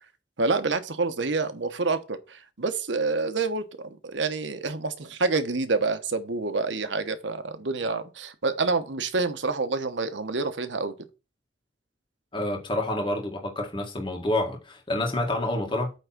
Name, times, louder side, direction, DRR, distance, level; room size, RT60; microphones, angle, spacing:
voice 1, 0.4-10.9, right 3 dB, 90° right, 1.1 m, -27 dB
voice 2, 12.3-15.9, left 1 dB, 25° left, 1.9 m, -28 dB
8.7 x 3.7 x 5.9 m
head